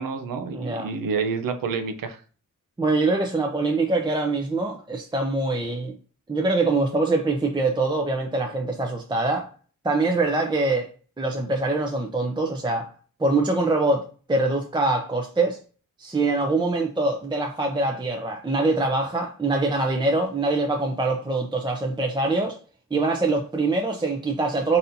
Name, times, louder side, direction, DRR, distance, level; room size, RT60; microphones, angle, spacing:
voice 1, 0.0-2.2, right 5 dB, 90° right, 0.7 m, -28 dB
voice 2, 0.5-0.9 2.8-5.9 6.3-9.5 9.8-10.9 11.2-12.9 13.2-15.6 16.0-22.6 22.9-24.8, right 2 dB, 15° right, 0.6 m, -24 dB
4.1 x 4.0 x 2.7 m
cardioid pair, 85°, 33 cm